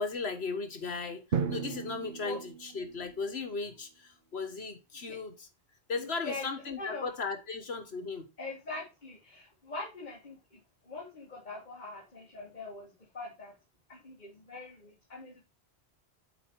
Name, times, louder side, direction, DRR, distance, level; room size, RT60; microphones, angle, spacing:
voice 1, 0.0-5.5 5.9-8.3, left 4 dB, 70° left, 1.6 m, -36 dB
Drum, 1.3-3.2, right 6 dB, 55° right, 1.0 m, -35 dB
voice 2, 6.0-6.5 6.8-7.1 8.4-13.5 13.9-15.4, left 3 dB, 45° left, 1.9 m, -43 dB
7.6 x 4.7 x 4.6 m
omnidirectional pair, 1.1 m